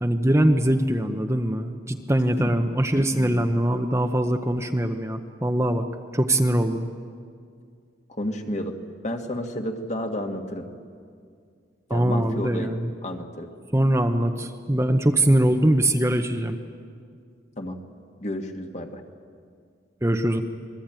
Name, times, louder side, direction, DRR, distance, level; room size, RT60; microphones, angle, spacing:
voice 1, 0.0-5.8 6.1-6.8 11.9-12.9 13.7-16.6 20.0-20.4, right 1 dB, 15° right, 5 dB, 0.8 m, -22 dB
voice 2, 3.1-3.4 8.2-8.8 9.0-10.7 11.9-13.5 17.6-17.8 18.2-19.0, left 1 dB, 35° left, 4 dB, 1.8 m, -31 dB
27.0 x 21.0 x 9.0 m, 2.2 s
head